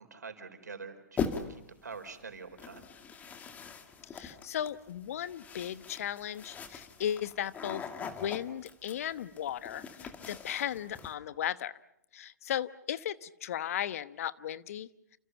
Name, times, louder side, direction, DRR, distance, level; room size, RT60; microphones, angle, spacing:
voice 1, 0.0-2.9, right 5 dB, 80° right, 7 dB, 4.5 m, -46 dB
sound 1, 1.2-1.7 2.6-11.1, left 5 dB, 15° left, 2.3 m, -41 dB
voice 2, 4.1-11.7 12.1-14.9, left 10 dB, 55° left, 15 dB, 1.1 m, -36 dB
29.0 x 29.0 x 5.8 m, 0.75 s
figure-of-eight pair, 120°, 9 cm